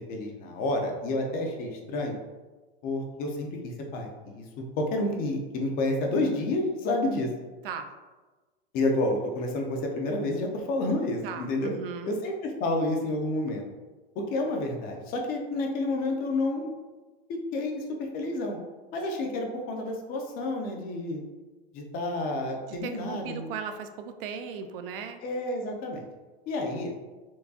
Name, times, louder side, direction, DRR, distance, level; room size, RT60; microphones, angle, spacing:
voice 1, 0.1-2.2 2.8-4.4 4.8-7.3 8.7-11.7 12.1-13.6 14.2-16.7 17.3-18.6 18.9-21.2 21.7-23.5 25.2-26.0 26.5-26.9, left 2 dB, 30° left, 2 dB, 0.5 m, -29 dB
voice 2, 11.2-12.2 22.8-25.2, right 6 dB, 65° right, 7 dB, 0.5 m, -37 dB
4.5 x 2.2 x 2.7 m, 1.3 s
supercardioid pair, 135°, 30 cm